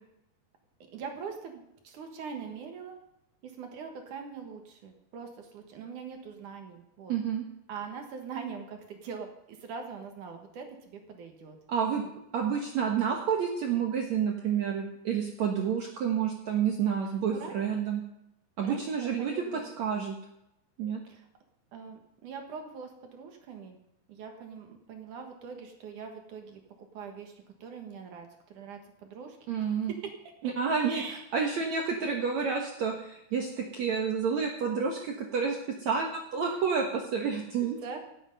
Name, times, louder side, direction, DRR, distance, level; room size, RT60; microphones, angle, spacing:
voice 1, 0.9-3.0 3.4-7.2 7.7-11.6 17.3-17.6 18.6-19.8 21.1-21.3 21.7-23.8 24.1-26.6 26.9-30.5 30.9-31.7 37.6-38.0, right 5 dB, 60° right, 4 dB, 2.4 m, -43 dB
voice 2, 7.1-7.4 11.7-18.0 18.6-20.2 20.8-21.0 29.5-29.9 30.6-31.0 31.3-37.8, right 6 dB, 80° right, 1 dB, 1.6 m, -29 dB
17.5 x 8.1 x 5.4 m, 0.81 s
omnidirectional pair, 5.1 m